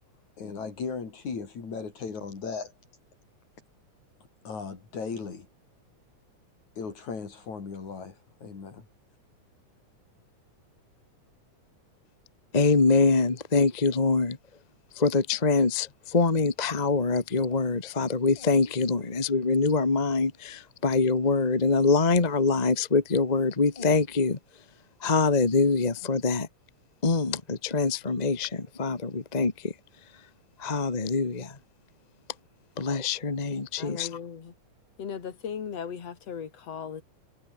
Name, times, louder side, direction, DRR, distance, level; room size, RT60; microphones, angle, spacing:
voice 1, 0.4-2.7 4.4-5.5 6.8-8.9, left 5 dB, 75° left, 5.7 m, -37 dB
voice 2, 12.5-14.4 15.0-15.9 16.1-24.4 25.0-26.5 27.0-29.7 30.6-31.5 32.8-34.1, left 4 dB, 20° left, 1.3 m, -24 dB
voice 3, 33.8-34.5 35.0-37.0, left 7 dB, 60° left, 3.8 m, -37 dB
omnidirectional pair, 3.3 m